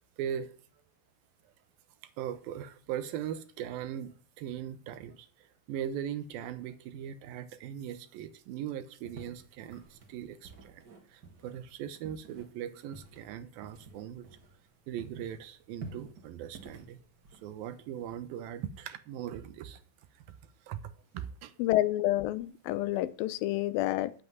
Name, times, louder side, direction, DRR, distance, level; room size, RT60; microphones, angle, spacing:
voice 1, 0.2-0.5 2.2-10.8 11.1-14.3 14.9-17.0 17.4-19.8 20.3-20.4 20.7-21.5, right 10 dB, 85° right, 2.8 m, -39 dB
sound 1, 9.0-14.7 15.0-17.9, right 3 dB, 40° right, 1.7 m, -50 dB
voice 2, 21.6-24.1, left 15 dB, 85° left, 2.5 m, -29 dB
8.9 x 8.2 x 9.4 m
omnidirectional pair, 4.1 m